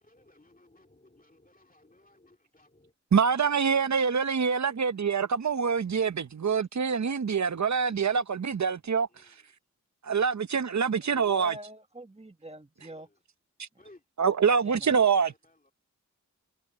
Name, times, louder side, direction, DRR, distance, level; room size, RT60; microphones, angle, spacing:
voice 1, 0.0-2.9 3.2-3.3 9.1-9.3 12.8-13.2 13.8-14.0 15.0-15.1 15.4-15.7, left 2 dB, 25° left, 2.3 m, -59 dB
voice 2, 3.1-9.1 10.0-11.6 14.2-15.3, right 6 dB, 60° right, 0.8 m, -25 dB
voice 3, 11.1-13.1 14.6-14.9, right 1 dB, 20° right, 1.4 m, -45 dB
wide cardioid pair, 60°, 32 cm